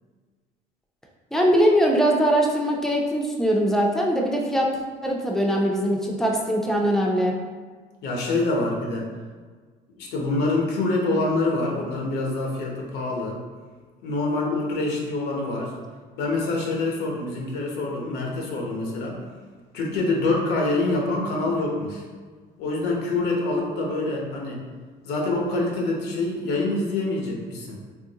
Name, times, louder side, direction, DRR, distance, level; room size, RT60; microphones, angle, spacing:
voice 1, 1.3-4.7 5.0-7.3, equal, ahead, -1 dB, 0.4 m, -21 dB
voice 2, 8.0-9.1 10.0-13.4 14.0-15.8 16.2-19.2 19.7-22.0 22.6-24.6 25.0-27.8, left 2 dB, 80° left, -1 dB, 0.7 m, -26 dB
3.2 x 2.5 x 2.7 m, 1.5 s
cardioid pair, 110°, 17 cm